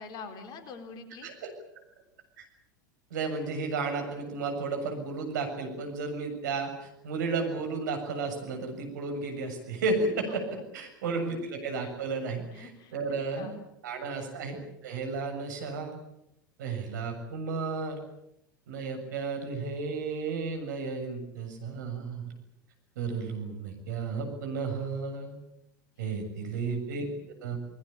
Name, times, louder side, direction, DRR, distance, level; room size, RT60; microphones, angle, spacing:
voice 1, 0.0-1.3 12.5-13.0 13.4-13.6 26.0-26.3, left 4 dB, 40° left, 7 dB, 3.9 m, -45 dB
voice 2, 3.1-13.6 13.8-16.0 16.6-18.0 18.7-22.3 23.0-25.4 26.0-27.1 27.4-27.6, right 4 dB, 65° right, 4 dB, 7.1 m, -33 dB
29.5 x 20.5 x 7.2 m, 0.82 s
figure-of-eight pair, 85°, 11 cm